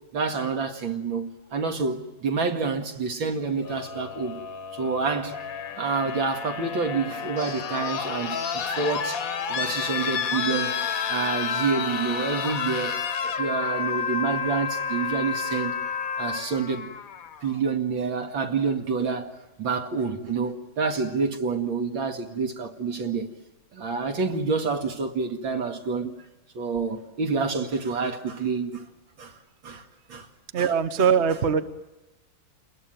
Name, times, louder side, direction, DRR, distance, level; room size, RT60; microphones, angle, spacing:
voice 1, 0.1-4.4 4.7-5.4 5.8-9.2 9.5-15.8 16.2-16.9 17.4-23.3 23.7-26.1 26.5-28.9 29.2-29.4 29.6-29.8 30.1-30.3 30.6-30.7, right 4 dB, 65° right, 2.7 m, -28 dB
sound 1, 3.6-17.6 18.8-18.9, left 6 dB, 50° left, 1.3 m, -30 dB
voice 2, 30.5-31.6, right 7 dB, 40° right, 1.1 m, -22 dB
29.0 x 21.5 x 9.3 m
omnidirectional pair, 2.3 m